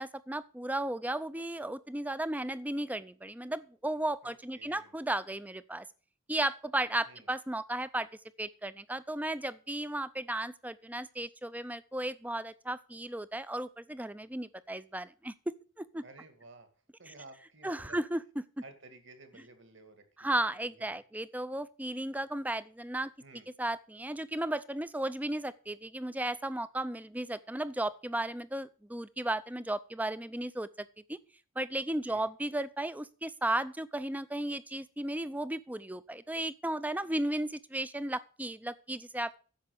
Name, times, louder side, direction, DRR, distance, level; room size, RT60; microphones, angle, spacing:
voice 1, 0.0-5.9 6.3-8.1 8.4-15.3 15.8-16.0 17.1-17.2 17.6-18.2 20.2-23.1 23.6-31.2 31.6-39.4, right 1 dB, 5° right, 16 dB, 0.4 m, -35 dB
voice 2, 4.2-4.9 7.0-7.3 16.0-16.7 17.0-18.0 18.6-21.0 23.2-23.5 32.1-32.3, right 2 dB, 55° right, 8 dB, 2.1 m, -54 dB
10.5 x 7.2 x 6.7 m, 0.38 s
head